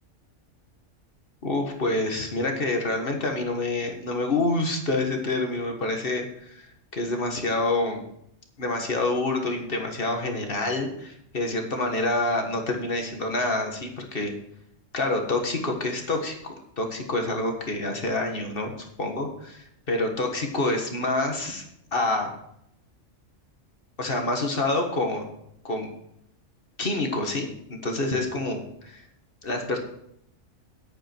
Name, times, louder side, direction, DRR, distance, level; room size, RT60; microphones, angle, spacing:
voice 1, 1.4-6.7 6.9-8.0 8.6-14.3 14.9-21.6 21.9-22.3 24.0-25.3 25.6-25.9 26.8-28.6 28.8-29.0 29.4-29.8, left 2 dB, 50° left, 3 dB, 1.8 m, -27 dB
10.0 x 8.8 x 4.5 m, 0.76 s
omnidirectional pair, 1.3 m